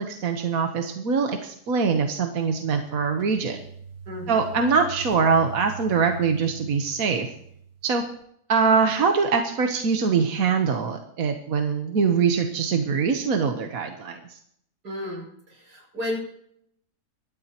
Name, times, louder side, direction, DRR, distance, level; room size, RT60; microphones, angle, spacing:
voice 1, 0.0-3.6 4.3-7.3 7.8-8.0 8.5-14.2, right 5 dB, 60° right, 4 dB, 1.5 m, -23 dB
sound 1, 2.4-8.1, right 5 dB, 35° right, 1.1 m, -41 dB
voice 2, 4.1-4.4 14.8-16.2, left 1 dB, 80° right, -1 dB, 6.7 m, -33 dB
25.0 x 13.0 x 3.0 m, 0.70 s
omnidirectional pair, 1.7 m